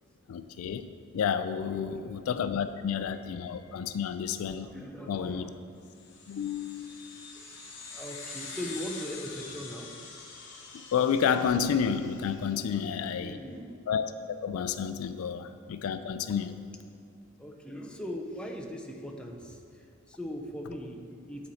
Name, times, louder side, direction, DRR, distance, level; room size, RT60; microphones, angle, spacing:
voice 1, 0.3-0.9 1.1-4.7 5.1-5.5 6.3-7.0 10.9-13.4 13.9-16.5, left 7 dB, 80° left, 11 dB, 0.3 m, -30 dB
voice 2, 1.6-2.1 2.7-4.0 4.6-5.8 6.3-6.4 7.3-7.5 7.8-9.9 12.7-13.9 15.1-15.4 17.4-21.5, equal, 5° left, 1 dB, 0.5 m, -41 dB
sound 1, 5.9-12.7, left 4 dB, 60° left, 0.9 m, -45 dB
8.7 x 4.4 x 4.1 m, 2.4 s
head